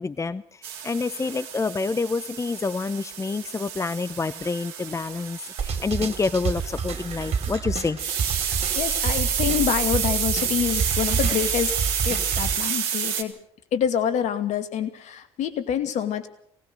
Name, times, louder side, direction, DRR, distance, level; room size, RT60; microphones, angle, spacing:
voice 1, 0.0-8.0, left 4 dB, 25° left, 16 dB, 0.8 m, -28 dB
sound 1, 0.6-7.6 8.0-13.2, right 8 dB, 80° right, 2.2 m, -29 dB
sound 2, 5.6-12.5, right 6 dB, 55° right, 3.7 m, -29 dB
voice 2, 8.5-11.7 12.0-13.4 13.7-16.3, left 9 dB, 65° left, 10 dB, 2.3 m, -26 dB
23.5 x 19.0 x 6.7 m, 0.65 s
hypercardioid pair, 55°, 13 cm